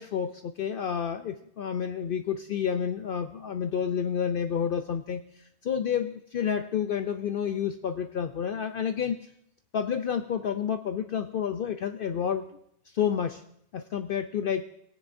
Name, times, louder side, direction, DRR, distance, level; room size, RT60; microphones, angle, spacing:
voice 1, 0.0-5.2 5.6-9.2 9.7-12.4 12.9-13.4 13.7-14.6, left 8 dB, 60° left, 8 dB, 0.6 m, -29 dB
18.5 x 9.3 x 2.6 m, 0.73 s
omnidirectional pair, 1.2 m